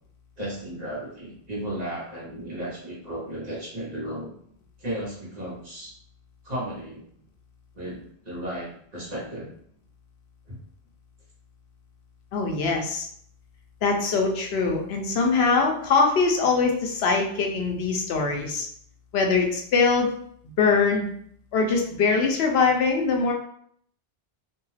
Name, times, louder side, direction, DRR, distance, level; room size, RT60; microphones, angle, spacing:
voice 1, 0.4-4.3 4.8-5.9 6.4-7.0 7.7-9.5 10.5-10.6, right 1 dB, 45° right, -5 dB, 1.0 m, -34 dB
voice 2, 12.3-13.1 13.8-18.7 19.1-20.1 20.6-21.1 21.5-23.3, left 4 dB, 80° left, 2 dB, 0.8 m, -22 dB
2.6 x 2.3 x 3.1 m, 0.63 s
omnidirectional pair, 1.1 m